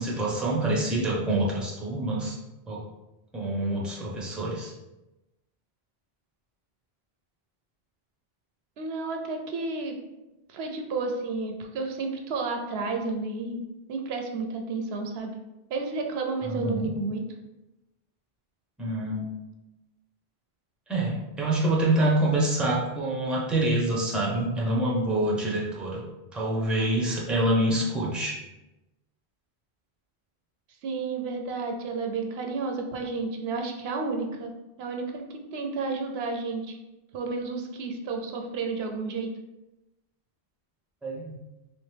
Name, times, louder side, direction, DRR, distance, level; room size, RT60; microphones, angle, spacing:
voice 1, 0.0-2.4 2.7-2.8 3.3-4.7 16.4-16.9 18.8-19.3 20.9-26.0 26.3-28.4 41.0-41.4, right 1 dB, ahead, -4 dB, 0.6 m, -26 dB
voice 2, 8.8-10.0 10.5-13.6 13.9-15.3 15.7-17.2 30.8-34.5 34.8-36.8 37.1-39.3, right 3 dB, 80° right, 3 dB, 0.8 m, -31 dB
3.3 x 3.1 x 3.2 m, 0.99 s
omnidirectional pair, 1.1 m